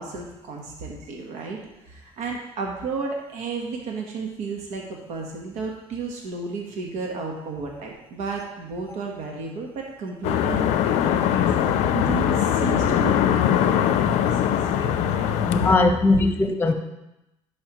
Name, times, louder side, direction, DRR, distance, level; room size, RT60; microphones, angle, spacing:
voice 1, 0.0-1.6 1.8-15.3, right 4 dB, 80° right, 0 dB, 1.2 m, -33 dB
sound 1, 10.2-15.8, left 9 dB, 80° left, 0.5 m, -21 dB
voice 2, 15.4-16.7, left 3 dB, 20° left, 5 dB, 0.9 m, -19 dB
11.0 x 5.1 x 3.0 m, 0.92 s
cardioid pair, 115°, 11 cm